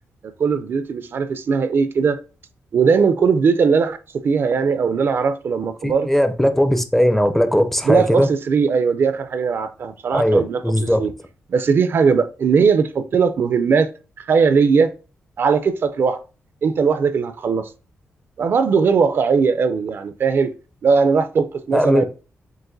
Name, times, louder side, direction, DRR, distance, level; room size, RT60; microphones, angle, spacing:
voice 1, 0.4-2.2 2.7-4.0 4.2-6.1 7.8-11.1 11.5-13.9 14.2-14.9 15.4-16.2 16.6-17.7 18.4-20.5 20.8-22.1, right 5 dB, 50° right, 0.4 m, -19 dB
voice 2, 5.8-8.3 10.1-11.0 21.7-22.1, equal, 5° left, 0.5 m, -18 dB
7.6 x 2.6 x 2.6 m
wide cardioid pair, 135°, 5 cm